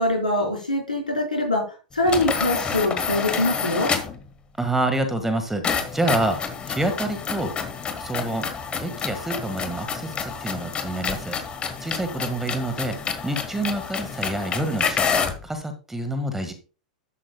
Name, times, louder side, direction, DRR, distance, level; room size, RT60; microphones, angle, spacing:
voice 1, 0.0-1.6 1.9-3.9, left 1 dB, 90° left, 0 dB, 4.7 m, -23 dB
sound 1, 2.0-4.2 5.6-15.4, left 6 dB, 25° left, 1.5 m, -28 dB
voice 2, 4.6-6.4 6.7-7.5 8.0-8.4 8.8-11.4 11.8-13.0 13.2-16.5, right 1 dB, 5° right, 8 dB, 1.7 m, -27 dB
11.5 x 8.5 x 2.3 m, 0.34 s
figure-of-eight pair, 95°, 4 cm